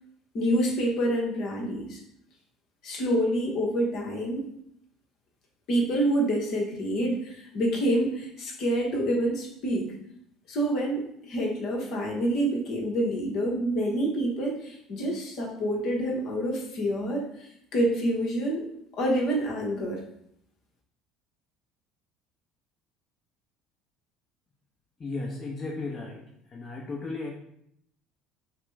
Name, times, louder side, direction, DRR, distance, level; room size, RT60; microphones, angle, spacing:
voice 1, 0.3-2.0 2.8-4.5 5.7-9.9 10.5-18.6 18.9-20.0, right 1 dB, 60° left, -1 dB, 1.0 m, -27 dB
voice 2, 25.0-26.2 26.5-27.3, left 3 dB, 35° left, -2 dB, 0.9 m, -34 dB
5.6 x 2.1 x 3.4 m, 0.73 s
hypercardioid pair, 75°, 0 cm